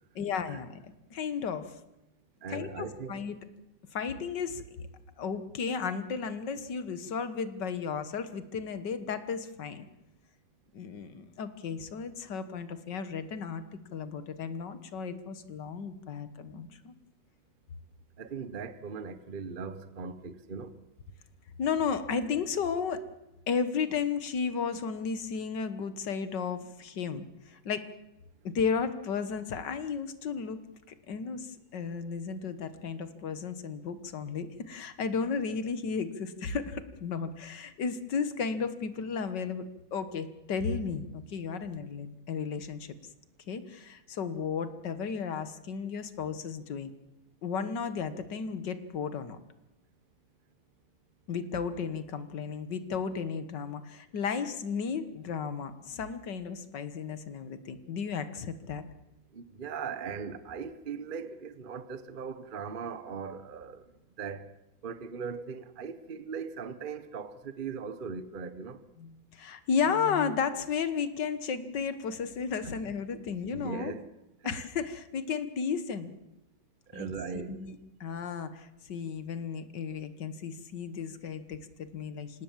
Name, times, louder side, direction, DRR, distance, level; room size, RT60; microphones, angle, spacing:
voice 1, 0.2-1.7 2.5-3.4 3.9-4.6 5.2-9.9 10.7-13.6 13.9-16.9 21.6-23.0 23.5-27.9 28.4-30.6 31.1-39.6 39.9-43.0 43.5-46.9 47.4-49.4 51.3-58.8 69.0-73.9 74.4-76.1 76.9-77.1 77.3-82.4, left 6 dB, 65° left, 1.9 m, -34 dB
voice 2, 2.4-3.2 18.2-20.8 59.3-63.9 64.2-64.5 64.8-68.8 72.6-72.7 73.5-74.1 74.4-74.6 76.9-77.7, right 5 dB, 35° right, 1.0 m, -39 dB
26.0 x 18.0 x 7.4 m
omnidirectional pair, 2.1 m